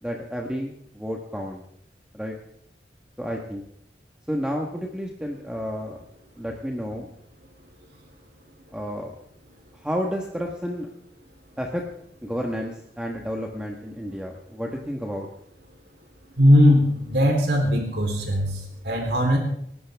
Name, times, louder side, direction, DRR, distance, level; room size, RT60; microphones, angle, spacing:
voice 1, 0.0-1.6 2.1-2.3 3.2-3.6 4.3-6.0 6.4-7.1 8.7-9.1 9.7-10.9 11.6-11.9 12.2-15.3, equal, 5° right, 0 dB, 1.4 m, -31 dB
voice 2, 16.4-19.4, equal, 75° right, 1 dB, 3.8 m, -19 dB
27.5 x 12.0 x 3.6 m, 0.72 s
head